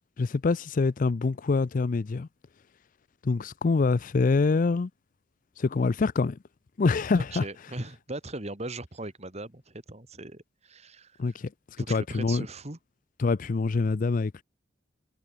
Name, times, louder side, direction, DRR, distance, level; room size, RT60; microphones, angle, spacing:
voice 1, 0.2-2.3 3.2-4.9 5.6-6.4 6.8-7.4 11.2-11.5 11.9-12.5 13.2-14.4, left 4 dB, 40° left, 0.4 m, -25 dB
voice 2, 7.1-11.4 11.8-12.8, right 2 dB, 30° right, 2.1 m, -39 dB
head